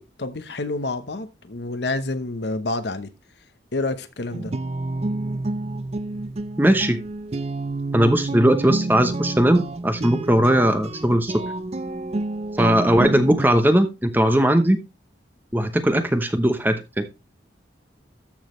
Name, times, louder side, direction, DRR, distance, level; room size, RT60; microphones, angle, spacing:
voice 1, 0.0-3.1 3.7-4.5, left 2 dB, 65° left, 1.0 m, -28 dB
sound 1, 4.3-13.5, right 2 dB, 35° right, 0.5 m, -29 dB
voice 2, 6.6-7.0 7.9-11.3 12.6-14.8 15.5-17.0, right 1 dB, 10° right, 0.9 m, -19 dB
13.5 x 6.4 x 3.2 m
head